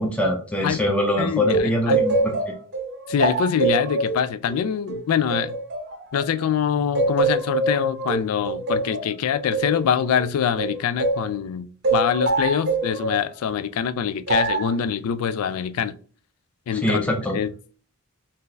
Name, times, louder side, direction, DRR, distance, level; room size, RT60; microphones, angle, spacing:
voice 1, 0.0-2.5 16.7-17.4, left 1 dB, 5° left, 0.4 m, -23 dB
voice 2, 1.2-2.0 3.1-5.6 6.1-16.0 16.7-17.0 17.3-17.5, left 8 dB, 75° left, 0.3 m, -24 dB
sound 1, 1.5-6.5 6.9-11.3 11.8-13.3 14.3-14.7, right 3 dB, 50° right, 0.7 m, -24 dB
2.7 x 2.4 x 3.7 m
head